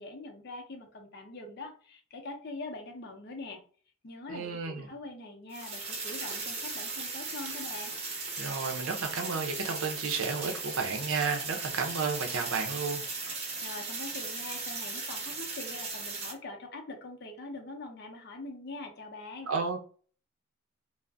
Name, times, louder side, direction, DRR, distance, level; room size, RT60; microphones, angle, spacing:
voice 1, 0.0-3.6 4.0-7.9 13.6-19.5, left 2 dB, 55° left, 0.6 m, -43 dB
voice 2, 4.3-4.9 8.4-13.0 19.5-19.8, right 5 dB, 85° right, 0.5 m, -32 dB
sound 1, 5.5-16.3, right 4 dB, 35° right, 0.7 m, -37 dB
2.5 x 2.0 x 3.3 m
head